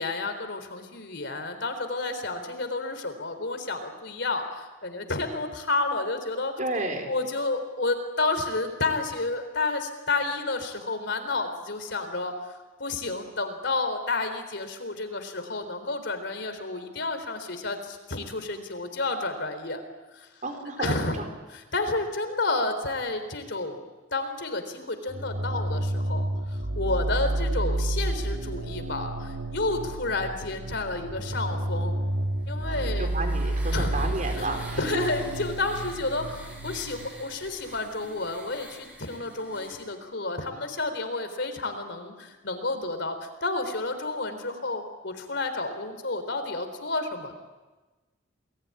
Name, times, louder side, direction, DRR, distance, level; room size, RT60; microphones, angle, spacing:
voice 1, 0.0-6.5 7.1-12.3 12.8-19.8 20.1-20.3 20.8-21.2 21.5-23.8 24.1-32.0 32.5-33.1 33.7-34.1 34.3-47.4, left 3 dB, 60° left, 8 dB, 3.9 m, -30 dB
voice 2, 6.6-7.1 20.4-21.3 32.6-35.0, right 2 dB, 40° right, 4 dB, 4.6 m, -32 dB
sound 1, 25.1-37.1, right 1 dB, 70° right, 2.2 m, -30 dB
sound 2, 32.4-39.9, right 1 dB, 5° right, 7.0 m, -47 dB
29.0 x 20.5 x 9.8 m, 1.2 s
head